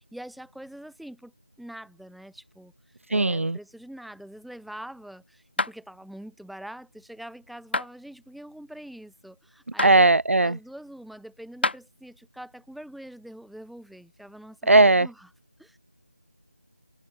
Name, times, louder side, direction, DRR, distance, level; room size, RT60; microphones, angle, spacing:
voice 1, 0.0-1.3 1.6-2.7 3.1-15.3 15.6-15.8, right 1 dB, ahead, 3.5 m, -44 dB
voice 2, 3.1-3.6 9.8-10.6 14.7-15.1, right 2 dB, 90° right, 0.5 m, -18 dB
sound 1, 5.6-5.8 7.7-7.9 9.8-10.0 11.6-11.8, left 3 dB, 55° left, 4.6 m, -26 dB
figure-of-eight pair, 170°, 7 cm